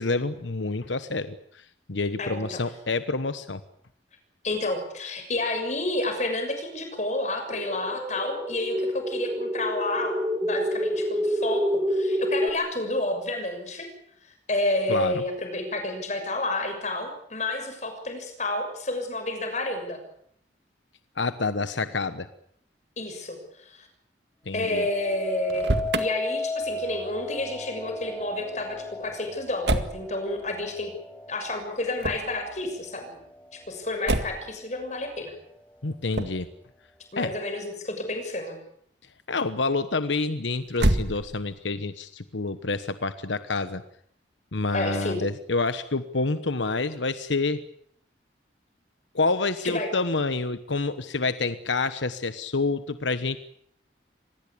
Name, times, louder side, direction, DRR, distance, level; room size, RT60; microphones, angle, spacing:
voice 1, 0.0-3.6 14.9-15.2 21.2-22.3 24.5-24.9 35.8-36.5 37.2-37.3 39.3-43.8 44.5-47.6 49.1-53.4, left 3 dB, 90° left, 12 dB, 1.2 m, -28 dB
voice 2, 2.2-2.6 4.4-13.9 14.2-20.0 23.0-23.9 24.5-25.7 26.0-30.9 31.3-33.1 33.5-35.3 37.1-38.6 44.7-45.2 49.6-49.9, left 2 dB, 40° left, 6 dB, 6.6 m, -30 dB
sound 1, 7.5-12.5, equal, 15° right, 3.2 m, -27 dB
sound 2, 24.6-33.8 34.3-34.8, left 1 dB, 5° left, 2.9 m, -36 dB
Motor vehicle (road), 25.4-26.1 29.6-30.0 32.0-32.4 34.0-34.5 36.1-36.5 40.7-41.6, right 1 dB, 70° right, 2.0 m, -26 dB
26.0 x 19.5 x 8.7 m, 0.67 s
head